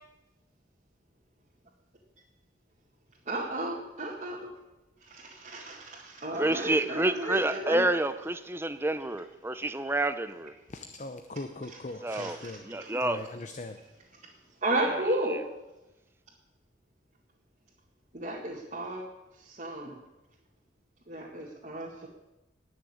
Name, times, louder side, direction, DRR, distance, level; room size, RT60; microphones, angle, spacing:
voice 1, 3.3-4.5 5.1-7.8 11.7-11.8 12.1-12.9 14.6-15.4 18.1-19.0 19.5-19.9 21.1-22.1, right 1 dB, 40° right, 1.9 m, -33 dB
voice 2, 6.3-10.5 12.0-13.3 14.8-15.4, right 1 dB, 15° right, 0.7 m, -29 dB
voice 3, 10.7-12.6 13.0-13.8, left 2 dB, 40° left, 0.7 m, -40 dB
19.0 x 6.5 x 8.6 m
head